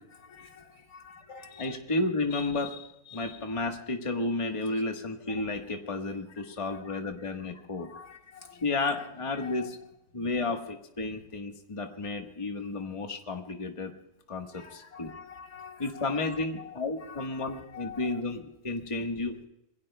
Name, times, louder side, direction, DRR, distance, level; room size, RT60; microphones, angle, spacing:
voice 1, 0.1-1.8 6.4-7.3 7.7-9.7 14.5-18.3, left 6 dB, 80° left, 2.6 m, -48 dB
voice 2, 1.3-7.9 8.6-9.8 10.1-13.9 14.3-15.1 15.8-19.4, left 3 dB, 20° left, 1.3 m, -32 dB
26.5 x 21.5 x 2.2 m
omnidirectional pair, 1.5 m